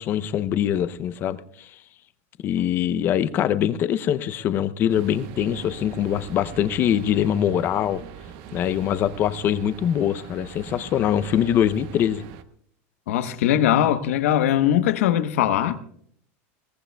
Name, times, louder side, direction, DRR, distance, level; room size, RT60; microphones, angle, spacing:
voice 1, 0.0-1.7 2.4-8.0 8.5-12.2, left 10 dB, 30° left, 0.6 m, -23 dB
sound 1, 4.9-12.4, right 8 dB, 45° right, 0.8 m, -42 dB
voice 2, 13.1-15.8, left 11 dB, 80° left, 1.0 m, -20 dB
22.0 x 18.0 x 2.3 m
supercardioid pair, 165°, 7 cm